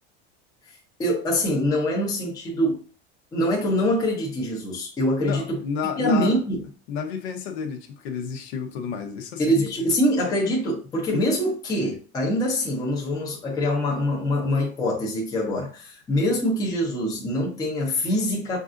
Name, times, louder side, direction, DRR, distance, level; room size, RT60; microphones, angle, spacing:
voice 1, 0.7-2.9 3.3-5.6 6.0-6.6 9.4-18.6, equal, 10° left, 0.7 m, -24 dB
voice 2, 5.2-6.3 6.9-9.6 11.1-11.2, left 6 dB, 65° left, 0.9 m, -30 dB
5.4 x 2.5 x 2.5 m
supercardioid pair, 170°, 35 cm